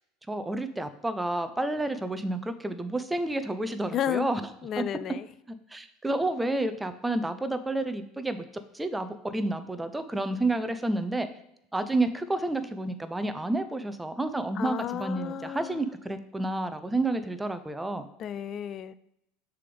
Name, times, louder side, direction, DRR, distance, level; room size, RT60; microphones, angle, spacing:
voice 1, 0.3-4.4 4.8-4.9 5.7-8.4 8.7-11.3 11.7-18.1, right 2 dB, 10° right, 10 dB, 0.6 m, -30 dB
voice 2, 3.9-4.3 4.6-5.3 14.6-15.8 18.2-18.9, left 9 dB, 45° left, 16 dB, 0.4 m, -32 dB
6.5 x 3.5 x 5.3 m, 0.78 s
hypercardioid pair, 75°, 0 cm